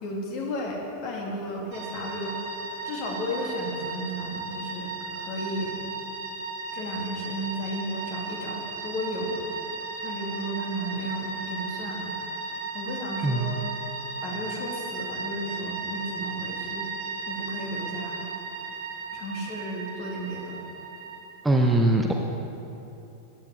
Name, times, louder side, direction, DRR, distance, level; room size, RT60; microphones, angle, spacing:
voice 1, 0.0-2.4 2.8-5.8 6.7-9.4 10.0-12.1 12.7-13.7 14.2-16.9 17.3-18.3 19.1-20.6, equal, 45° left, -1 dB, 2.4 m, -34 dB
sound 1, 1.7-21.2, right 3 dB, 45° right, 1.9 m, -36 dB
voice 2, 13.2-13.5 21.4-22.1, right 2 dB, 10° right, 2 dB, 0.9 m, -21 dB
14.0 x 9.8 x 4.8 m, 2.9 s
figure-of-eight pair, 90°, 0 cm